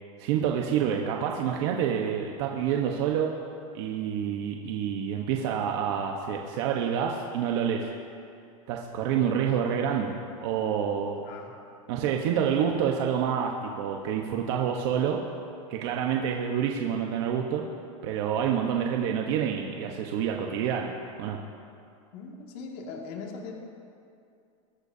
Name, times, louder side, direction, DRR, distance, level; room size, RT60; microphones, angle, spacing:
voice 1, 0.2-3.3 3.7-7.9 8.7-10.1 10.4-11.3 11.9-15.2 15.7-17.6 18.0-20.9 21.2-21.4, right 8 dB, 55° right, 1 dB, 1.1 m, -28 dB
voice 2, 22.1-23.5, left 4 dB, 50° left, 0 dB, 2.1 m, -40 dB
22.5 x 13.5 x 2.8 m, 2.5 s
supercardioid pair, 160°, 17 cm